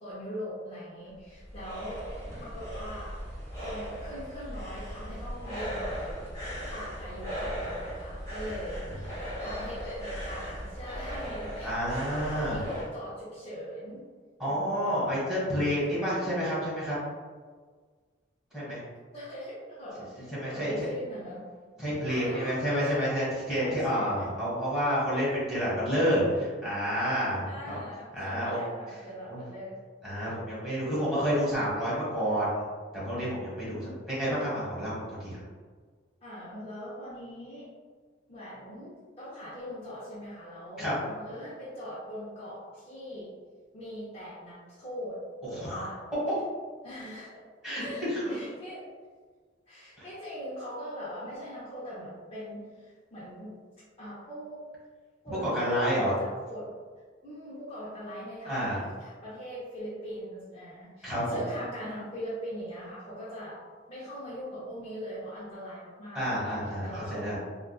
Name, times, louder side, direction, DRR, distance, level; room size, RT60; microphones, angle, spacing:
voice 1, 0.0-2.1 2.4-3.2 3.5-11.7 12.1-14.0 14.4-14.8 18.6-18.7 19.1-21.4 22.1-23.2 23.5-24.3 25.1-25.2 27.4-29.8 31.3-31.5 33.6-34.1 36.2-37.7 38.3-43.3 43.7-45.2 45.5-46.0 46.8-47.3 47.8-48.8 49.7-53.6 54.0-54.6 55.2-56.7 57.2-63.6 63.9-66.3 66.8-67.4, equal, 30° left, -9 dB, 0.6 m, -41 dB
sound 1, 1.0-12.9, equal, 15° left, 1.1 m, -38 dB
voice 2, 11.6-12.6 14.4-16.9 18.5-18.8 20.3-20.9 21.8-27.8 28.1-28.6 29.2-29.4 30.0-32.6 32.9-33.8 34.1-35.4 40.8-40.9 45.5-45.8 47.6-48.3 50.0-50.1 55.3-56.1 58.4-58.8 61.0-61.4 66.1-67.4, equal, 5° right, -10 dB, 1.5 m, -29 dB
3.6 x 2.4 x 2.3 m, 1.5 s
head